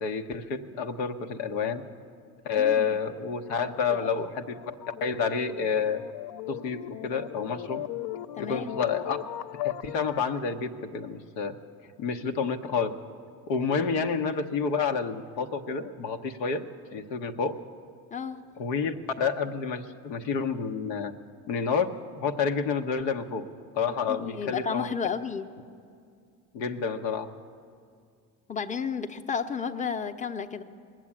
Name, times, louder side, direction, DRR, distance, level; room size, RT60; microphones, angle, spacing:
voice 1, 0.0-1.8 2.4-4.6 5.0-6.0 6.5-7.8 8.4-9.2 9.6-11.6 12.0-13.0 13.5-16.6 16.9-17.5 18.6-21.1 21.5-23.5 23.7-24.9 26.5-27.3, left 5 dB, 85° left, 5 dB, 0.8 m, -29 dB
voice 2, 2.6-3.0 3.9-4.3 8.4-8.8 18.1-18.4 24.1-25.5 28.5-30.6, left 6 dB, 15° left, 8 dB, 0.7 m, -32 dB
sound 1, 3.1-10.4, left 14 dB, 55° left, 0.5 m, -38 dB
19.5 x 7.5 x 8.6 m, 2.3 s
hypercardioid pair, 60°, 46 cm